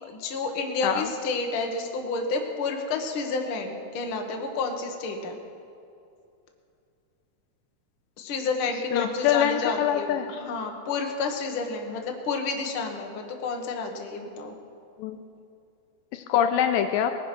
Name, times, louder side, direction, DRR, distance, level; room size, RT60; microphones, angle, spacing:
voice 1, 0.0-5.4 8.2-14.5, left 4 dB, 55° left, 2 dB, 1.5 m, -30 dB
voice 2, 8.9-10.3 15.0-15.2 16.1-17.1, left 9 dB, 80° left, 7 dB, 2.2 m, -24 dB
20.5 x 10.0 x 6.0 m, 2.5 s
omnidirectional pair, 4.3 m